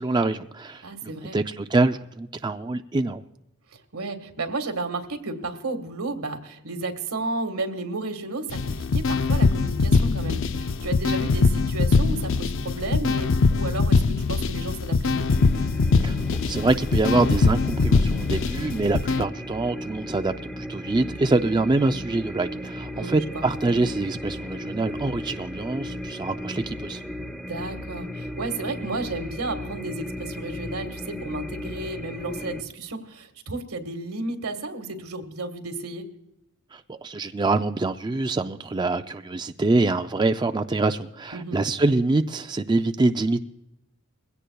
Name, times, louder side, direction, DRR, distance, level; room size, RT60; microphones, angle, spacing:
voice 1, 0.0-3.2 16.0-16.2 16.5-27.0 36.7-43.4, right 2 dB, 20° right, 0.4 m, -25 dB
voice 2, 0.8-1.4 3.9-15.3 22.9-23.4 27.5-36.1 41.3-41.6, right 2 dB, 85° right, 1.6 m, -33 dB
sound 1, 8.5-19.2, left 4 dB, 60° left, 0.4 m, -22 dB
sound 2, 15.3-32.6, left 1 dB, 5° left, 0.8 m, -36 dB
21.5 x 16.5 x 2.3 m
head